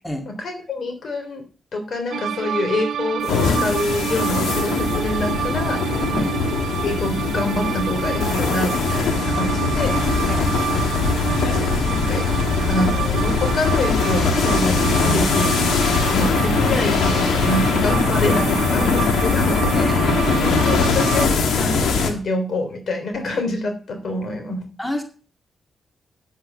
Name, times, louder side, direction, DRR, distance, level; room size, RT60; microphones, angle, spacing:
voice 1, 0.2-1.4 1.7-6.3 6.8-10.0 11.9-12.2 12.7-15.6 16.1-19.9 20.4-24.7, left 1 dB, 65° left, 6 dB, 3.4 m, -26 dB
sound 1, 2.1-21.3, right 10 dB, 80° right, 0.4 m, -28 dB
sound 2, 3.2-22.1, left 4 dB, 90° left, 1.8 m, -21 dB
voice 2, 10.3-10.6 19.7-20.4 24.8-25.0, left 1 dB, 15° left, 4 dB, 2.1 m, -29 dB
9.2 x 8.9 x 5.6 m, 0.36 s
cardioid pair, 65°, 0 cm